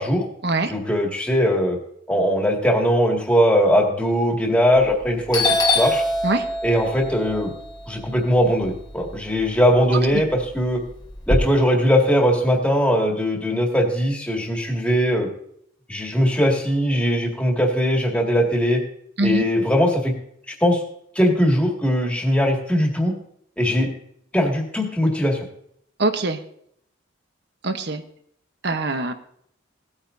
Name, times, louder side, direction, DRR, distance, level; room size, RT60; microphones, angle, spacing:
voice 1, 0.7-1.8 2.1-5.5 5.7-6.0 6.6-7.5 7.9-10.8 11.3-15.3 15.9-18.8 19.2-20.1 20.6-20.8 21.2-23.2 23.6-23.9 24.3-25.4, equal, 5° left, -1 dB, 2.0 m, -20 dB
Doorbell, 4.7-5.0 5.3-9.5 9.8-11.4, left 2 dB, 20° left, 1.2 m, -24 dB
voice 2, 26.0-26.4 27.6-28.0 28.6-29.1, right 2 dB, 60° right, 8 dB, 1.0 m, -22 dB
17.5 x 8.8 x 2.7 m, 0.69 s
head